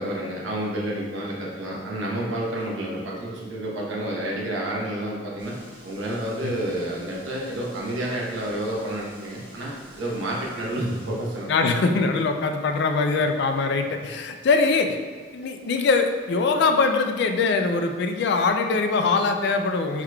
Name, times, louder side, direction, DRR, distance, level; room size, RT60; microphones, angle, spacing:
voice 1, 0.0-5.6 5.8-11.5, right 1 dB, 80° right, -3 dB, 0.9 m, -29 dB
sound 1, 5.4-11.5, right 1 dB, 25° right, 1.0 m, -48 dB
voice 2, 11.5-15.0 15.3-20.0, left 4 dB, 60° left, 6 dB, 0.3 m, -22 dB
4.6 x 3.6 x 2.3 m, 1.5 s
head